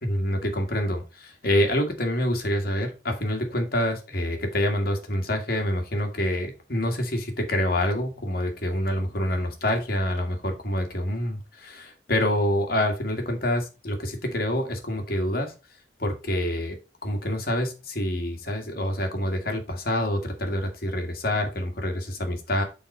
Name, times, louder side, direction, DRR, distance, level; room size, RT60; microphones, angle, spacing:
voice 1, 0.0-15.5 16.0-16.8 17.0-22.6, left 1 dB, 55° left, 4 dB, 2.0 m, -27 dB
7.2 x 4.1 x 5.4 m, 0.30 s
head